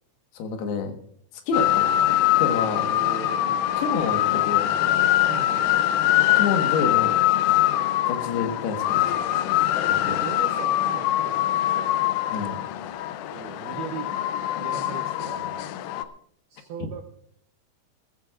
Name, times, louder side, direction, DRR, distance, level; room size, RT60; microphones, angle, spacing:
voice 1, 0.3-1.0 1.5-1.9 2.4-2.9 3.8-4.7 6.3-7.1 8.1-9.6 9.9-10.1 12.3-12.6, left 5 dB, 65° left, 5 dB, 3.1 m, -28 dB
sound 1, 1.5-16.0, left 13 dB, 85° left, 2.5 m, -23 dB
voice 2, 2.9-3.7 5.3-5.8 10.1-12.0 13.3-14.1 14.6-15.7 16.5-17.0, right 7 dB, 90° right, 6 dB, 2.1 m, -38 dB
20.5 x 14.5 x 2.5 m, 0.65 s
omnidirectional pair, 5.6 m